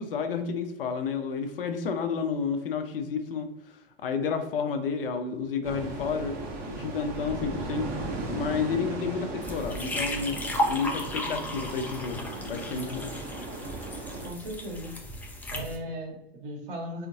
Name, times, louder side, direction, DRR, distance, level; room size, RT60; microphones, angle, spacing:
voice 1, 0.0-6.4 6.7-7.9 8.3-10.4 10.7-13.1, left 5 dB, 65° left, 7 dB, 0.5 m, -31 dB
sound 1, 5.6-14.3, right 2 dB, 30° right, 0.7 m, -37 dB
sound 2, 9.4-15.8, left 1 dB, 5° left, 0.3 m, -34 dB
voice 2, 14.2-14.9 15.5-17.1, equal, 60° right, 0 dB, 1.1 m, -37 dB
3.6 x 2.5 x 2.6 m, 0.87 s
figure-of-eight pair, 95°, 30 cm